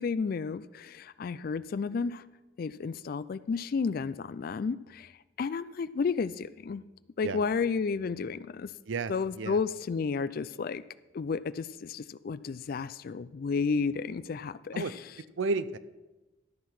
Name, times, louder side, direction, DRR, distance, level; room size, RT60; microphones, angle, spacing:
voice 1, 0.0-2.2 2.6-5.1 5.4-6.8 7.2-8.7 9.1-10.8 11.1-14.8, left 5 dB, 45° left, 16 dB, 0.3 m, -32 dB
voice 2, 8.9-9.6 14.7-14.9 15.4-15.8, right 3 dB, 70° right, 15 dB, 0.5 m, -32 dB
13.0 x 5.7 x 6.0 m, 1.1 s
head